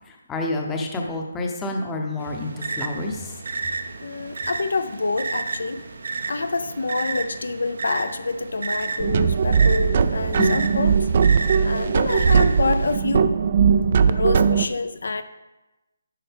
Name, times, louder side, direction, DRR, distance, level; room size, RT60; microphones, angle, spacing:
voice 1, 0.1-3.3 10.3-10.6, left 2 dB, 10° left, 1 dB, 0.7 m, -28 dB
sound 1, 2.2-13.0, right 3 dB, 70° right, 0.7 m, -32 dB
voice 2, 4.0-5.8 6.3-11.1 11.6-13.4 14.1-15.2, left 3 dB, 75° left, 10 dB, 0.5 m, -27 dB
sound 2, 9.0-14.7, right 6 dB, 40° right, 0.3 m, -19 dB
10.0 x 5.3 x 3.5 m, 1.0 s
hypercardioid pair, 165°, 0 cm